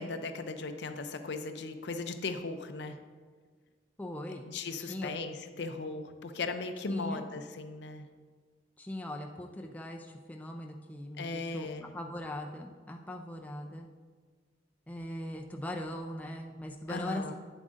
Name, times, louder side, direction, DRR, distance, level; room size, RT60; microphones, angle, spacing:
voice 1, 0.0-3.0 4.5-8.1 11.2-11.9 16.9-17.3, left 3 dB, 60° left, 8 dB, 0.5 m, -37 dB
voice 2, 4.0-4.4 4.8-5.1 6.9-7.2 8.8-11.7 11.9-13.9 14.9-17.3, left 1 dB, 10° left, 1 dB, 0.4 m, -40 dB
9.1 x 7.4 x 2.5 m, 1.5 s
head